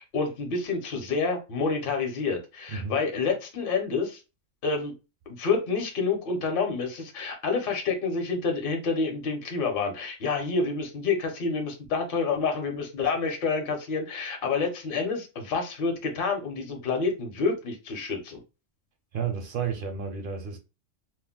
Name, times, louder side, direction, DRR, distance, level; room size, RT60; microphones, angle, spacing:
voice 1, 0.0-4.2 4.6-4.9 5.3-18.4, left 4 dB, 50° left, 0.8 m, -28 dB
voice 2, 2.7-3.0 19.1-20.6, right 6 dB, 55° right, 0.6 m, -31 dB
2.4 x 2.1 x 3.5 m
omnidirectional pair, 1.3 m